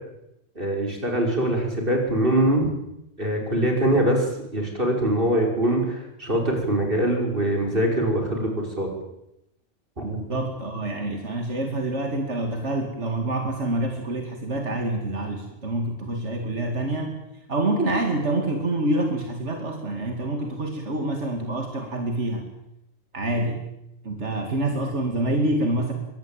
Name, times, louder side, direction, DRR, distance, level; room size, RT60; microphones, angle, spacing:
voice 1, 0.6-2.7 3.2-4.3 4.5-8.9 10.0-10.1, right 1 dB, 50° right, 2 dB, 5.8 m, -23 dB
voice 2, 10.0-17.1 17.5-22.4 23.1-23.6 24.0-25.9, right 1 dB, 85° right, 4 dB, 2.7 m, -26 dB
23.5 x 18.5 x 9.0 m, 0.85 s
omnidirectional pair, 1.2 m